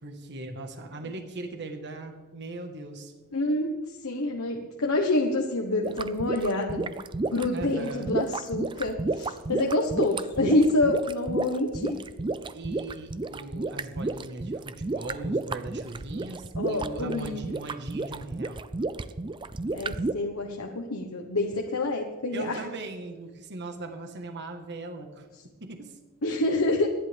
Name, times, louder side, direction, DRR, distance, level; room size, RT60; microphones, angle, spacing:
voice 1, 0.0-3.1 7.5-8.1 12.5-18.6 22.3-25.3 25.6-26.4, right 2 dB, 50° right, 5 dB, 1.5 m, -39 dB
voice 2, 3.3-7.0 7.3-12.0 16.6-17.4 19.7-22.6 26.2-26.9, left 2 dB, 75° left, 1 dB, 1.3 m, -27 dB
sound 1, 5.8-20.1, right 3 dB, 20° right, 0.4 m, -32 dB
27.0 x 11.0 x 3.5 m, 1.3 s
head